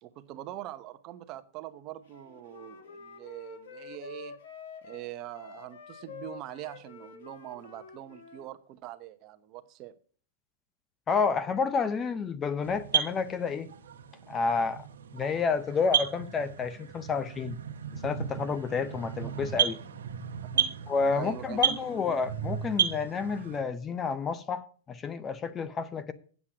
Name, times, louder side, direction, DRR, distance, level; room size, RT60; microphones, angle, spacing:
voice 1, 0.0-4.4 4.8-10.0 19.2-19.4 20.5-20.8 21.1-21.8, right 13 dB, 40° right, 0.8 m, -43 dB
Wind instrument woodwind instrument, 2.1-8.5, left 5 dB, 70° left, 1.6 m, -47 dB
voice 2, 11.1-13.7 14.3-14.9 15.1-17.6 18.0-19.8 20.9-26.1, left 5 dB, 20° left, 0.7 m, -30 dB
sound 1, 12.6-23.6, right 9 dB, 85° right, 1.3 m, -33 dB
8.4 x 7.4 x 6.2 m
hypercardioid pair, 135°, 0 cm